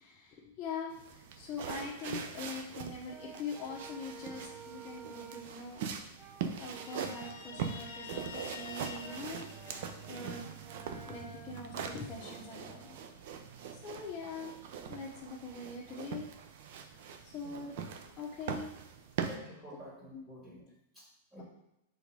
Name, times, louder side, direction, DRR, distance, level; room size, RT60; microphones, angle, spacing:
voice 1, 0.0-5.8 6.2-6.3 6.6-10.4 11.1-13.0 13.7-14.6 14.9-16.3 17.2-18.8 20.1-20.2, left 4 dB, 30° left, -5 dB, 1.0 m, -43 dB
sound 1, 0.9-19.4, right 7 dB, 60° right, 0.7 m, -42 dB
Brass instrument, 3.1-5.6 6.2-13.1, right 5 dB, 30° right, 0.8 m, -53 dB
Guitar, 6.8-10.4, left 6 dB, 70° left, 0.8 m, -48 dB
voice 2, 19.3-20.6 20.9-21.0 21.3-21.4, equal, 15° right, -7 dB, 2.1 m, -49 dB
5.1 x 3.9 x 4.8 m, 0.86 s
supercardioid pair, 145°, 0 cm